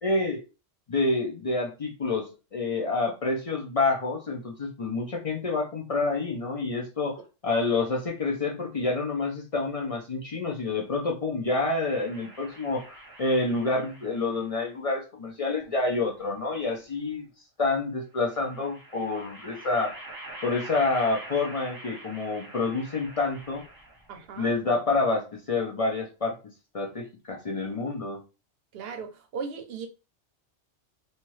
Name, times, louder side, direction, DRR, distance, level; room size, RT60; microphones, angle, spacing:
voice 1, 0.0-0.4 0.9-7.2 7.4-17.3 17.6-19.9 20.4-23.6 24.4-26.4 26.7-28.2, left 3 dB, 45° left, 0.4 m, -28 dB
sound 1, 11.8-14.5 15.6-16.6 18.2-24.2, right 1 dB, 25° right, 0.5 m, -45 dB
voice 2, 24.1-24.5 28.7-29.9, right 5 dB, 65° right, 0.8 m, -37 dB
2.8 x 2.3 x 3.1 m
omnidirectional pair, 1.2 m